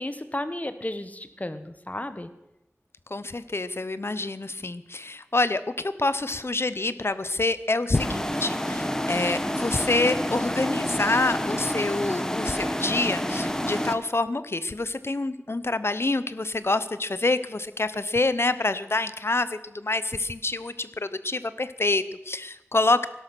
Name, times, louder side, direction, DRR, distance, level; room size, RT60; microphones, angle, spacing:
voice 1, 0.0-2.3, left 1 dB, 30° left, 11 dB, 1.4 m, -33 dB
voice 2, 3.1-23.1, left 2 dB, 55° left, 14 dB, 0.9 m, -27 dB
sound 1, 7.9-13.9, equal, 10° left, 1.4 m, -28 dB
17.5 x 12.0 x 6.2 m, 0.90 s
wide cardioid pair, 50°, 5 cm